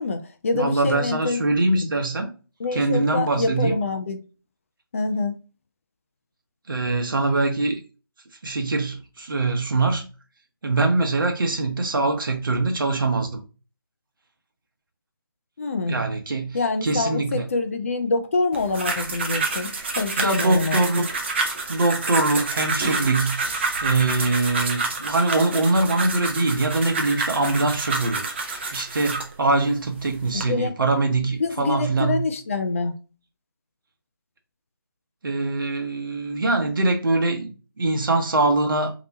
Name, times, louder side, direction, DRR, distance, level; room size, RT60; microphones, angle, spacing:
voice 1, 0.0-1.4 1.7-1.9 2.6-4.2 4.9-5.4 15.6-16.0 16.5-21.0 30.3-30.7 31.4-32.9, left 3 dB, 35° left, 0.5 m, -26 dB
voice 2, 0.5-2.3 2.7-3.8 6.7-7.8 8.4-10.1 10.6-13.4 15.9-16.6 16.8-17.5 20.2-21.1 21.7-23.4 23.8-32.2 35.2-38.9, right 2 dB, 60° right, 0.8 m, -23 dB
sound 1, 18.5-29.3 30.0-30.4, right 3 dB, 30° right, 0.6 m, -28 dB
3.2 x 2.9 x 2.7 m
figure-of-eight pair, 160°, 13 cm